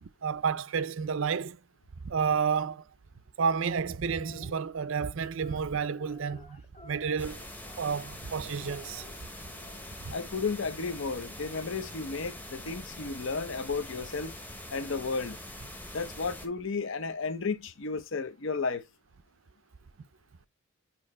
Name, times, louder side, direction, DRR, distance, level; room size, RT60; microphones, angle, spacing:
voice 1, 0.0-1.6 2.0-2.8 3.4-7.4 7.8-9.1 10.0-10.1, right 6 dB, 55° right, 0.5 m, -31 dB
sound 1, 3.9-4.5 5.3-8.2 8.6-10.1 11.3-12.6, left 2 dB, 30° left, 1.5 m, -54 dB
sound 2, 7.2-16.5, left 1 dB, 10° left, 0.9 m, -44 dB
voice 2, 10.1-14.3 14.7-15.4 15.9-18.9, left 4 dB, 55° left, 0.7 m, -33 dB
8.7 x 2.9 x 4.2 m
head